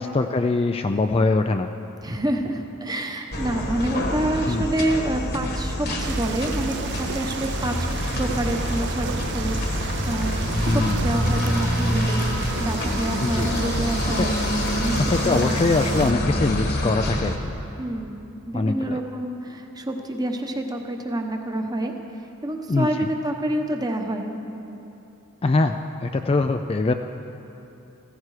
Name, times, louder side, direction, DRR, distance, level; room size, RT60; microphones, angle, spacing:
voice 1, 0.0-1.7 4.5-4.6 10.7-11.1 13.2-13.5 14.1-14.3 15.1-17.5 18.5-19.0 22.7-23.1 25.4-26.9, left 3 dB, 25° left, 6 dB, 0.3 m, -23 dB
voice 2, 2.0-7.7 8.2-14.3 14.8-15.6 17.8-21.9 22.4-24.3, right 1 dB, 15° right, 4 dB, 0.9 m, -28 dB
sound 1, 3.3-17.4, left 1 dB, 45° left, 1.4 m, -26 dB
sound 2, 6.0-16.1, right 8 dB, 50° right, 0.3 m, -34 dB
15.5 x 14.5 x 4.9 m, 2.9 s
head